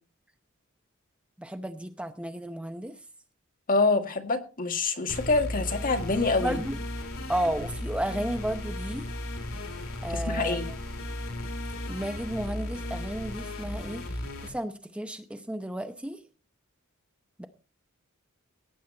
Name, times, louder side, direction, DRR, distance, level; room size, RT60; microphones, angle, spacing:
voice 1, 1.4-2.9 6.2-6.8 7.3-9.1 10.0-10.6 11.9-16.2 17.4-17.5, right 1 dB, 5° right, 8 dB, 0.7 m, -33 dB
voice 2, 3.7-6.6 10.1-10.6, left 3 dB, 40° left, 5 dB, 1.9 m, -26 dB
sound 1, 5.1-14.5, left 1 dB, 75° left, 3.1 m, -35 dB
17.5 x 9.4 x 4.2 m, 0.34 s
head